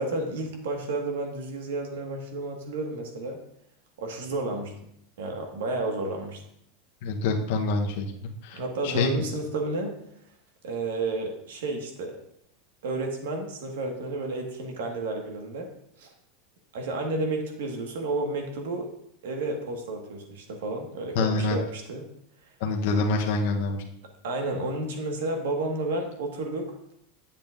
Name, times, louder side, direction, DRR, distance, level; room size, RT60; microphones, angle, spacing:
voice 1, 0.0-3.4 4.0-4.7 5.2-6.4 8.5-9.9 10.6-12.2 12.8-15.7 16.0-16.1 16.7-18.9 19.2-22.0 24.2-26.7, right 2 dB, 90° right, 3 dB, 1.5 m, -31 dB
voice 2, 7.0-9.2 21.1-21.6 22.6-23.8, left 3 dB, 55° left, 1 dB, 0.8 m, -26 dB
10.5 x 7.1 x 2.5 m, 0.72 s
supercardioid pair, 180°, 0 cm